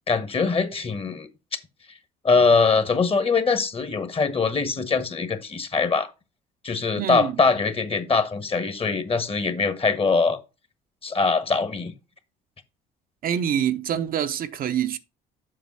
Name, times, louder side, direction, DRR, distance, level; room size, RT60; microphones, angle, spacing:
voice 1, 0.1-1.3 2.2-6.1 6.6-10.4 11.0-11.9, left 4 dB, 30° left, 1.4 m, -22 dB
voice 2, 6.9-7.4 13.2-15.0, right 9 dB, 50° right, 0.7 m, -25 dB
7.5 x 5.3 x 4.1 m
hypercardioid pair, 65°, 19 cm